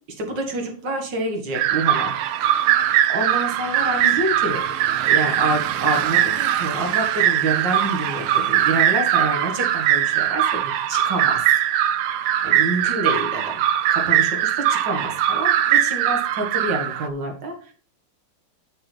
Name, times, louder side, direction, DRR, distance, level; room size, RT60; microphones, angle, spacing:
voice 1, 0.2-2.1 2.4-4.7 5.0-11.5 12.4-13.6 13.9-17.7, right 2 dB, 55° right, 3 dB, 2.4 m, -27 dB
sound 1, 1.5-17.1, right 11 dB, 80° right, 1.5 m, -21 dB
9.5 x 6.2 x 4.5 m, 0.41 s
omnidirectional pair, 2.3 m